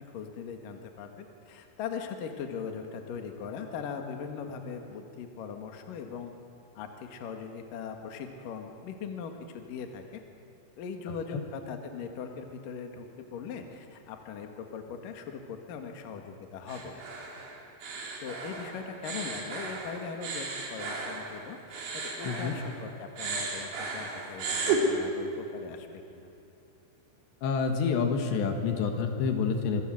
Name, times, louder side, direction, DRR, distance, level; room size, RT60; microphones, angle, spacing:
voice 1, 0.0-6.3 6.8-10.2 10.8-17.0 18.2-26.3, left 6 dB, 60° left, 4 dB, 3.1 m, -40 dB
sound 1, 16.7-22.9 23.2-24.8, right 5 dB, 85° right, 6.1 m, -35 dB
voice 2, 27.4-29.8, left 5 dB, 75° left, 5 dB, 3.8 m, -28 dB
26.5 x 23.5 x 7.8 m, 2.8 s
omnidirectional pair, 5.1 m